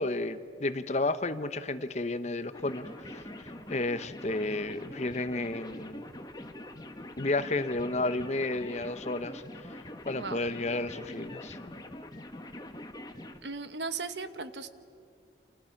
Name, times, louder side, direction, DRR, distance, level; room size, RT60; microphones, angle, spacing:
voice 1, 0.0-6.1 7.2-9.4 10.1-11.7, left 2 dB, 40° left, 11 dB, 0.9 m, -32 dB
sound 1, 2.5-13.4, left 1 dB, 20° left, 1.4 m, -44 dB
voice 2, 10.1-10.5 13.4-14.7, right 4 dB, 70° right, 11 dB, 1.2 m, -37 dB
29.5 x 28.0 x 5.9 m, 2.3 s
head